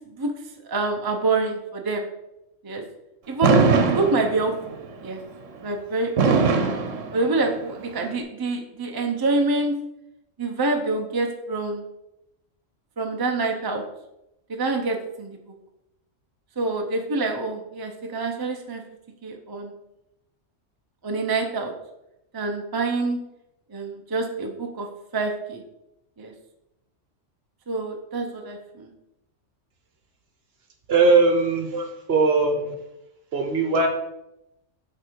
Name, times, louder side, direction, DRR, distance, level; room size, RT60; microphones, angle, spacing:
voice 1, 0.7-2.0 2.6-2.8 3.3-3.6 3.9-5.2 5.6-6.3 7.1-9.8 10.4-11.8 13.0-13.8 14.6-15.4 16.6-18.8 19.2-19.7 21.0-21.7 22.3-23.2 23.7-24.9 25.1-25.6 26.2-26.3 27.7-28.9 31.7-31.9, right 3 dB, 25° right, 3 dB, 0.7 m, -26 dB
Fireworks, 3.4-4.7 6.2-7.7, right 5 dB, 80° right, 1.2 m, -20 dB
voice 2, 30.9-31.7 32.1-32.7 33.3-33.9, right 3 dB, 55° right, 4 dB, 1.2 m, -19 dB
8.5 x 4.0 x 4.6 m, 0.88 s
omnidirectional pair, 1.3 m